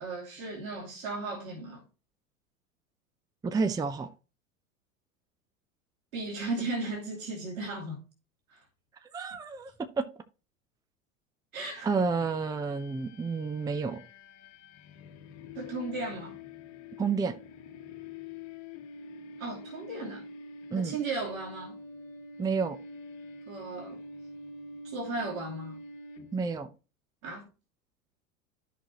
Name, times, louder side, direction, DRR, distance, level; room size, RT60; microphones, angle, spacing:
voice 1, 0.0-1.8 6.1-8.0 8.5-8.6 11.5-11.9 15.5-16.4 19.4-20.2 20.7-21.8 23.5-24.0 24.8-25.8 27.2-27.5, right 3 dB, 75° right, 2.8 m, -36 dB
voice 2, 3.4-4.1 9.1-9.7 10.0-10.1 11.8-14.0 17.0-17.3 20.7-21.0 22.4-22.8 26.3-26.7, right 4 dB, 10° right, 0.6 m, -30 dB
sound 1, 12.2-26.7, left 2 dB, 40° left, 1.2 m, -46 dB
11.0 x 6.1 x 3.0 m
hypercardioid pair, 90°, 41 cm